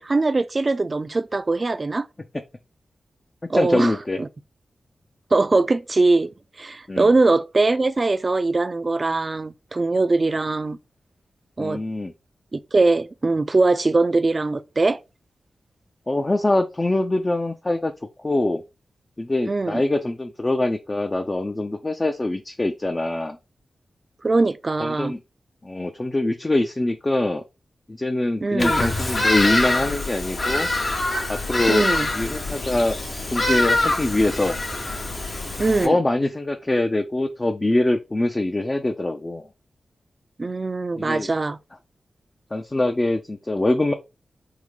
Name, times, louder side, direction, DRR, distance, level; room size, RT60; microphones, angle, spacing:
voice 1, 0.0-2.1 3.5-4.3 5.3-6.3 6.6-10.8 11.6-11.8 12.5-15.0 19.5-19.8 24.2-25.1 28.4-28.8 31.7-32.1 35.6-36.0 40.4-41.6, right 3 dB, 45° right, 0.3 m, -21 dB
voice 2, 3.5-4.2 6.9-7.1 11.6-12.1 16.1-17.9 18.2-18.6 19.2-23.4 24.8-25.2 25.6-27.4 27.9-30.7 31.3-31.8 32.1-33.0 33.3-34.6 35.8-39.5 41.0-41.3 42.5-43.9, left 2 dB, 35° left, 0.4 m, -23 dB
Bird vocalization bird call bird song, 28.6-35.9, left 2 dB, 55° left, 0.8 m, -24 dB
3.6 x 2.1 x 3.2 m
cardioid pair, 45°, 0 cm